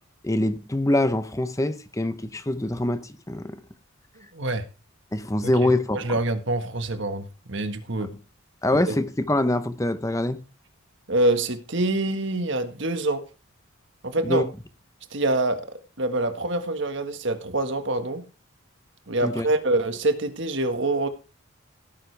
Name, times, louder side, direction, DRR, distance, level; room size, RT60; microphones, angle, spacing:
voice 1, 0.2-3.6 5.1-6.2 8.0-8.1 8.6-10.4 14.2-14.5 19.2-19.5, left 1 dB, 15° left, 0.8 m, -24 dB
voice 2, 4.3-4.6 5.6-8.1 8.9-9.0 11.1-13.2 14.0-14.4 15.1-15.6 16.0-18.2 19.1-21.1, right 2 dB, 55° right, 1.6 m, -25 dB
17.0 x 9.5 x 3.4 m
head